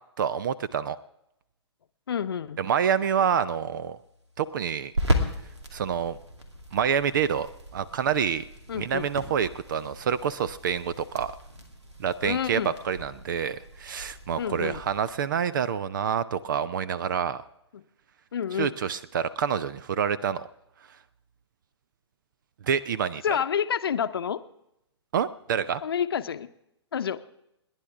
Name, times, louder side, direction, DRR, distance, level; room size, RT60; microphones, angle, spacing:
voice 1, 0.2-1.0 2.6-4.0 4.4-4.9 5.7-6.2 6.7-8.4 8.8-11.3 12.0-17.4 18.6-20.5 22.6-23.2 25.1-25.8, right 8 dB, 45° right, 16 dB, 0.5 m, -27 dB
voice 2, 2.1-2.6 8.7-9.1 12.2-12.7 14.4-14.8 17.7-17.8 18.3-18.7 23.2-24.4 25.8-26.5 26.9-27.2, left 8 dB, 55° left, 11 dB, 0.8 m, -28 dB
sound 1, 2.9-15.1, equal, 70° right, 2.4 m, -36 dB
29.0 x 10.5 x 3.6 m, 0.83 s
figure-of-eight pair, 120°, 15 cm